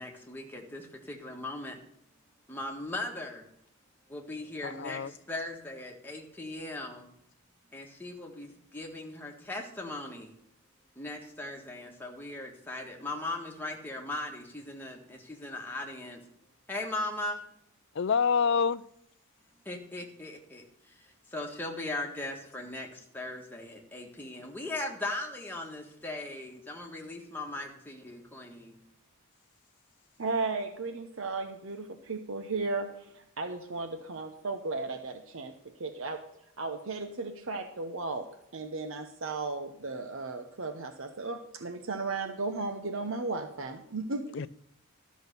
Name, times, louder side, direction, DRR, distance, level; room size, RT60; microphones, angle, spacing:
voice 1, 0.0-1.8 2.5-3.4 4.1-7.1 7.7-10.3 10.9-16.2 16.7-17.4 19.6-28.8, left 2 dB, 10° left, 1.6 m, -39 dB
voice 2, 4.6-5.1 18.0-18.8 44.3-44.5, left 6 dB, 55° left, 0.4 m, -27 dB
voice 3, 30.2-36.2 36.6-38.3 38.5-44.3, right 3 dB, 65° right, 0.9 m, -35 dB
12.5 x 6.3 x 6.8 m
head